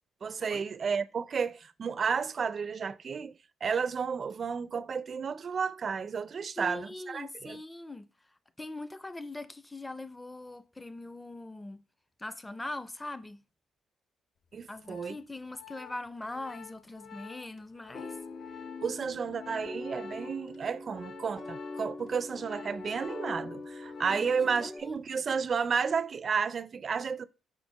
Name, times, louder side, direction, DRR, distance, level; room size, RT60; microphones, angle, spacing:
voice 1, 0.2-3.3 3.6-7.6 14.5-15.2 18.8-27.2, right 6 dB, 45° right, 0.4 m, -32 dB
voice 2, 6.6-8.1 8.6-11.8 12.2-13.4 14.7-18.2 24.1-24.9, left 2 dB, 15° left, 0.5 m, -41 dB
Organ, 14.5-24.5 24.8-25.1, left 8 dB, 60° left, 0.7 m, -51 dB
sound 1, 17.9-24.8, left 2 dB, 40° left, 2.1 m, -42 dB
5.5 x 4.5 x 4.5 m
cardioid pair, 90°, 0 cm